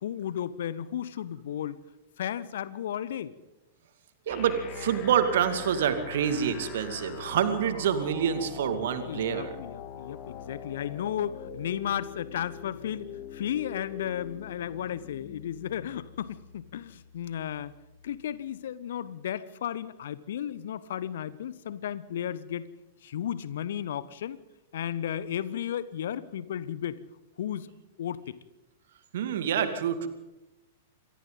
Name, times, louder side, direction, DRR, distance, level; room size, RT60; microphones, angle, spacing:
voice 1, 0.0-1.8 2.2-3.3 9.1-17.7 18.0-22.7 23.0-24.4 24.7-27.0 27.4-27.7 28.0-28.4, left 10 dB, 55° left, 18 dB, 1.0 m, -34 dB
sound 1, 4.3-18.3, left 8 dB, 35° left, 2.5 m, -43 dB
voice 2, 4.3-9.6 29.1-30.1, right 8 dB, 55° right, 9 dB, 2.3 m, -27 dB
27.5 x 23.5 x 4.0 m, 0.96 s
figure-of-eight pair, 100°, 0 cm